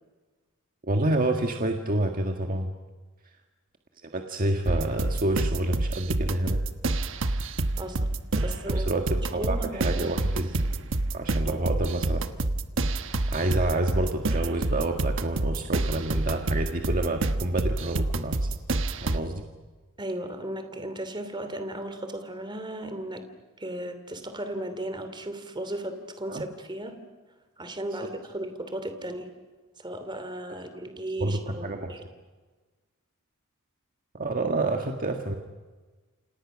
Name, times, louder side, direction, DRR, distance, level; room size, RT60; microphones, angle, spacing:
voice 1, 0.8-2.7 4.1-6.6 8.4-8.5 8.7-10.6 11.1-12.2 13.3-18.5 19.0-19.4 26.3-26.4 31.2-31.9 34.1-35.4, right 1 dB, 40° right, 3 dB, 1.7 m, -28 dB
sound 1, 4.7-19.2, right 2 dB, 60° right, 1.2 m, -28 dB
voice 2, 7.8-8.1 8.4-9.0 9.3-10.0 11.5-11.6 20.0-23.2 23.6-26.9 27.6-29.3 29.8-32.0, right 1 dB, 20° right, 8 dB, 2.8 m, -35 dB
29.5 x 26.5 x 6.3 m, 1.3 s
head